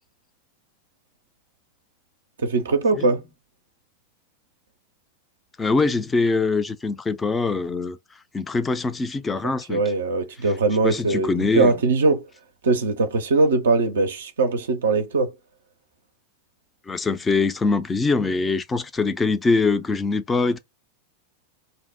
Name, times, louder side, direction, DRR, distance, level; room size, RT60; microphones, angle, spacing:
voice 1, 2.4-3.2 9.4-12.2 12.6-15.3, right 3 dB, 65° right, 0.4 m, -21 dB
voice 2, 5.6-8.0 8.3-9.8 10.8-11.7 16.9-20.6, left 3 dB, 15° left, 0.4 m, -23 dB
2.6 x 2.0 x 3.4 m
figure-of-eight pair, 90°, 0 cm